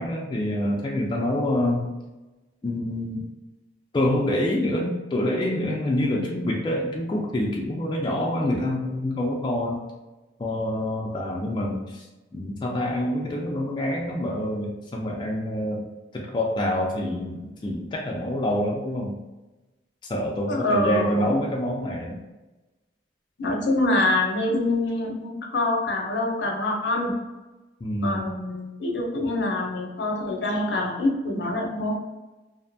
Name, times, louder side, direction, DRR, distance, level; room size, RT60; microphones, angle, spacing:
voice 1, 0.0-1.9 2.6-3.3 3.9-9.8 10.4-12.1 12.3-15.9 16.1-19.2 20.1-22.2 27.8-28.3, left 1 dB, 25° left, -2 dB, 0.3 m, -26 dB
voice 2, 20.5-21.4 23.4-27.2 28.0-31.9, left 2 dB, 75° left, 0 dB, 0.5 m, -25 dB
2.6 x 2.1 x 2.5 m, 1.1 s
head